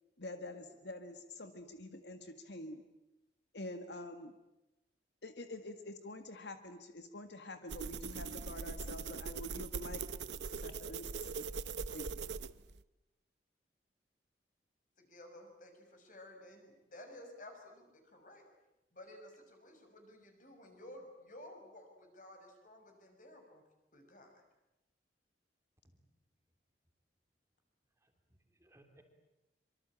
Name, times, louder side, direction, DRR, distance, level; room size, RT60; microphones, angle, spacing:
voice 1, 0.2-2.9 3.5-4.4 5.2-10.0 10.5-11.5 11.9-12.2, left 1 dB, 75° left, 8 dB, 1.8 m, -47 dB
sound 1, 7.7-12.8, right 5 dB, 80° right, 0.9 m, -41 dB
voice 2, 15.0-18.4 18.9-23.6 23.9-24.3, left 1 dB, 45° left, 4 dB, 6.3 m, -54 dB
voice 3, 28.0-29.0, right 1 dB, 15° right, 4 dB, 3.2 m, -66 dB
25.5 x 24.5 x 8.9 m, 0.96 s
head